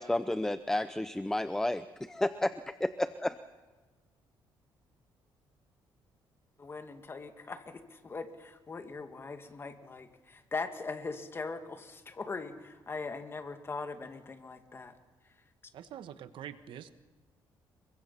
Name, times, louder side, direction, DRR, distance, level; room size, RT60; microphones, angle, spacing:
voice 1, 0.0-3.4, left 1 dB, 5° left, 12 dB, 0.6 m, -31 dB
voice 2, 6.6-14.9, left 4 dB, 25° left, 7 dB, 2.3 m, -40 dB
voice 3, 15.7-16.9, right 10 dB, 70° right, 11 dB, 1.4 m, -45 dB
28.0 x 23.5 x 5.7 m, 1.3 s
cardioid pair, 135°, 9 cm